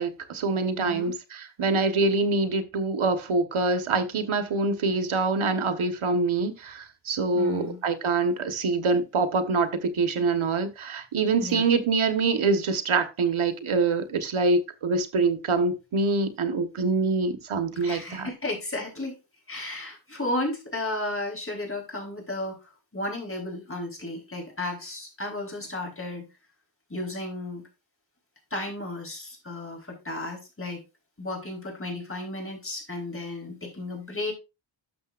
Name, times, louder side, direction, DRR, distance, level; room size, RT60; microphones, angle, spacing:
voice 1, 0.0-18.3, right 3 dB, 80° right, 1.4 m, -25 dB
voice 2, 0.8-1.2 7.3-7.8 11.4-11.6 17.8-19.2 19.5-26.3 26.9-27.7 28.5-30.8 31.2-34.3, left 2 dB, 25° left, 4.3 m, -33 dB
12.0 x 6.8 x 2.5 m
wide cardioid pair, 130°, 48 cm